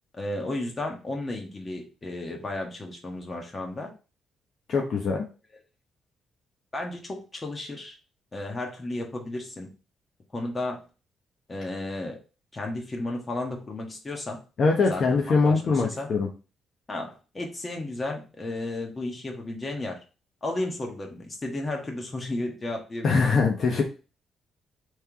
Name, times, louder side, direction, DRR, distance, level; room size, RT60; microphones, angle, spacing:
voice 1, 0.1-3.9 6.7-8.0 8.3-9.7 10.3-10.8 11.5-12.2 12.5-14.4 14.9-16.1 16.9-20.0 20.4-23.2, left 2 dB, 25° left, 1 dB, 1.4 m, -33 dB
voice 2, 4.7-5.2 14.6-16.3 23.0-23.8, left 4 dB, 55° left, 0 dB, 0.9 m, -22 dB
3.5 x 3.4 x 4.5 m, 0.33 s
cardioid pair, 90°, 0 cm